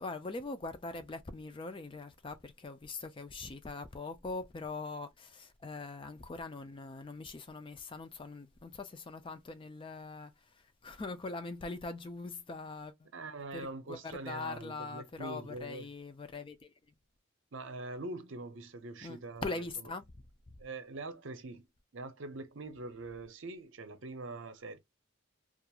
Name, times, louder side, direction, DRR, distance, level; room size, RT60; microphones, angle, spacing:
voice 1, 0.0-10.3 10.8-13.1 13.5-16.7 19.0-20.0, left 3 dB, 25° left, 0.3 m, -42 dB
voice 2, 13.1-15.9 17.5-19.9 20.6-21.7 21.9-24.8, right 2 dB, 60° right, 0.6 m, -43 dB
2.9 x 2.4 x 2.2 m
head